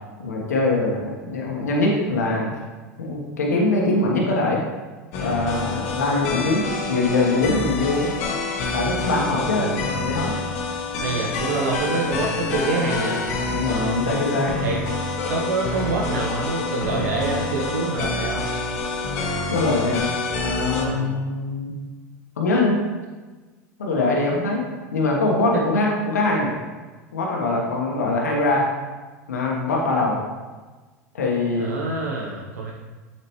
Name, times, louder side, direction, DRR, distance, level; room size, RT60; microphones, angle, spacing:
voice 1, 0.2-2.5 3.0-4.6 5.2-8.1 8.7-9.7 10.0-10.3 13.5-14.5 19.5-20.1 20.4-21.7 22.4-22.8 23.8-24.6 24.9-26.5 27.1-28.7 29.3-30.2 31.1-31.7, left 2 dB, 85° left, -1 dB, 1.3 m, -22 dB
sound 1, 5.1-20.8, left 3 dB, 65° left, 1.4 m, -27 dB
voice 2, 9.3-9.9 11.0-13.2 14.0-14.2 14.6-14.8 15.3-18.4 20.8-21.1 31.6-32.7, right 3 dB, 80° right, -3 dB, 1.0 m, -26 dB
7.9 x 5.8 x 3.1 m, 1.3 s
hypercardioid pair, 85°, 8 cm